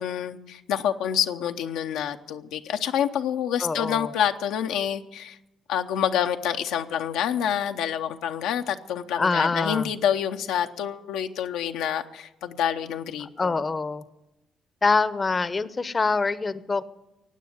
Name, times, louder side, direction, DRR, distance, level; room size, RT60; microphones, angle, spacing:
voice 1, 0.0-5.4 5.7-13.6, left 9 dB, 85° left, 5 dB, 0.7 m, -27 dB
voice 2, 3.6-4.1 9.2-9.9 13.4-14.0 14.8-16.8, left 4 dB, 35° left, 15 dB, 0.7 m, -24 dB
16.0 x 9.1 x 9.6 m, 0.95 s
supercardioid pair, 60°, 0 cm